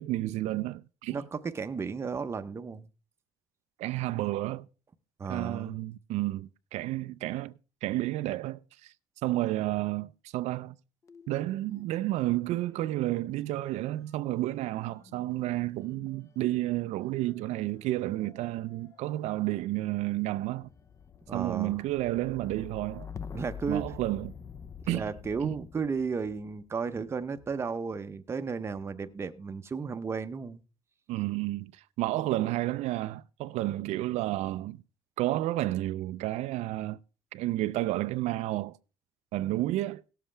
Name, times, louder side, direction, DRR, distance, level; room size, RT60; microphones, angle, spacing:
voice 1, 0.0-1.2 3.8-4.7 5.3-7.5 7.8-8.9 9.2-10.8 11.3-20.7 21.3-23.1 23.7-24.3 24.9-25.0 25.4-25.6 31.1-34.8 35.2-37.0 37.3-38.8 39.3-40.0, right 16 dB, 75° right, 0.4 m, -31 dB
voice 2, 1.1-2.9 5.2-5.7 21.3-21.8 23.3-23.9 24.9-30.6, right 5 dB, 20° right, 0.7 m, -34 dB
sound 1, 11.0-12.4 12.6-27.7 28.5-29.0, left 6 dB, 25° left, 0.6 m, -49 dB
18.0 x 7.4 x 3.3 m
cardioid pair, 145°, 12 cm